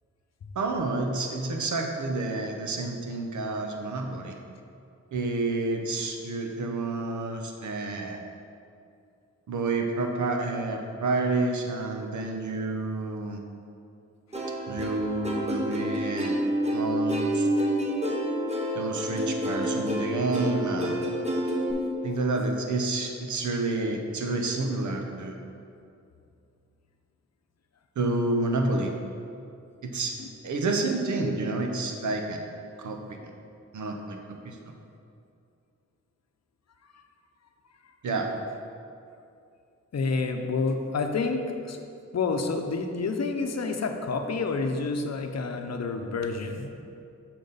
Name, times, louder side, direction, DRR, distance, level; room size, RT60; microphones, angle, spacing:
voice 1, 0.6-4.3 5.1-8.2 9.5-13.4 14.7-16.3 16.7-17.5 18.7-21.0 22.0-25.4 28.0-28.9 29.8-30.1 30.4-32.4 32.8-33.3 33.7-34.2 34.4-34.6 38.0-38.3, right 3 dB, 90° right, 3 dB, 0.8 m, -29 dB
Plucked string instrument, 14.3-21.7, equal, 20° right, 1.2 m, -28 dB
voice 2, 39.9-41.8 42.1-46.7, left 4 dB, 60° left, 5 dB, 0.7 m, -29 dB
6.7 x 5.8 x 4.0 m, 2.5 s
cardioid pair, 60°, 29 cm